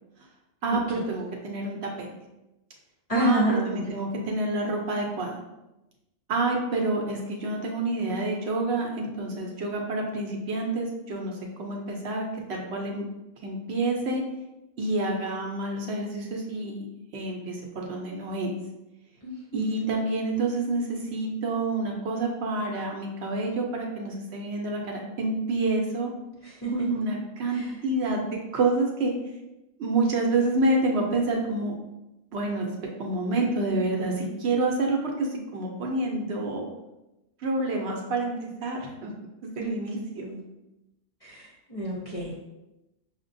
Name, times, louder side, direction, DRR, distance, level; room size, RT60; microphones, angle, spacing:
voice 1, 0.6-2.1 3.2-5.4 6.3-13.0 13.4-14.2 14.8-16.9 17.1-18.5 19.5-26.1 26.7-28.2 28.5-29.1 29.8-31.7 32.3-32.7 33.0-36.7 37.4-39.1 39.4-40.3, right 2 dB, 65° right, 0 dB, 0.8 m, -28 dB
voice 2, 3.1-3.8 19.2-19.9 26.4-26.7 27.5-27.7 39.6-39.7 40.1-40.4 41.2-42.4, right 1 dB, 40° left, -5 dB, 0.6 m, -29 dB
5.6 x 2.1 x 2.5 m, 0.96 s
omnidirectional pair, 1.3 m